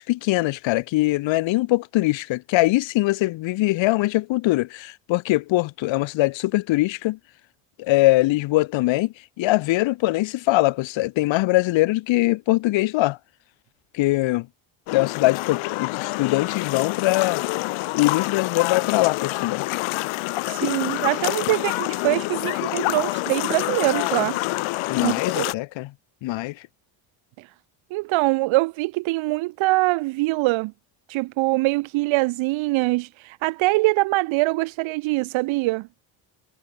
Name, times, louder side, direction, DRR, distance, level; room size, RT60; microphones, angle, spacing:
voice 1, 0.0-7.2 7.8-13.2 13.9-14.5 14.9-17.4 17.9-19.7 24.9-25.9 26.2-26.6, left 19 dB, 70° left, 0.9 m, -22 dB
sound 1, 14.9-25.5, left 21 dB, 90° left, 4.1 m, -27 dB
voice 2, 20.5-24.4 25.0-25.4 27.4-27.5 27.9-30.7 31.1-35.9, right 22 dB, 80° right, 0.7 m, -23 dB
cardioid pair, 85°, 47 cm